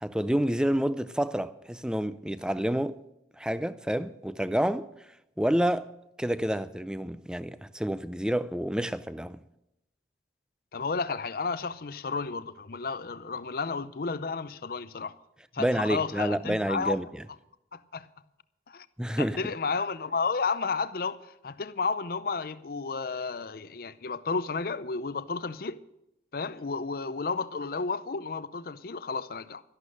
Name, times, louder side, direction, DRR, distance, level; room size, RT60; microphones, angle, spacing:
voice 1, 0.0-3.0 3.4-4.9 5.4-5.9 6.2-9.4 15.6-17.2 19.0-19.4, equal, 5° right, 0.4 m, -28 dB
voice 2, 10.7-15.1 15.5-17.0 17.7-18.1 18.7-18.9 19.2-25.8 26.3-29.6, left 4 dB, 55° left, 0.6 m, -32 dB
12.5 x 11.5 x 6.5 m
head